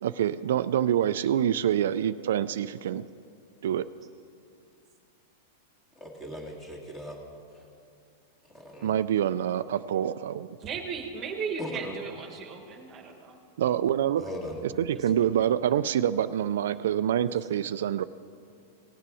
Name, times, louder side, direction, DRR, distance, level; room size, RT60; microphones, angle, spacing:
voice 1, 0.0-3.1 3.6-3.8 8.8-10.5 13.6-14.3 14.6-18.0, right 10 dB, 75° right, 12 dB, 0.3 m, -26 dB
voice 2, 6.0-7.2 8.5-8.9 11.6-12.0 14.2-14.6, left 1 dB, 15° left, 0 dB, 1.9 m, -38 dB
voice 3, 10.6-13.4, right 5 dB, 25° right, 5 dB, 1.2 m, -36 dB
18.0 x 7.6 x 4.8 m, 2.5 s
supercardioid pair, 150°, 0 cm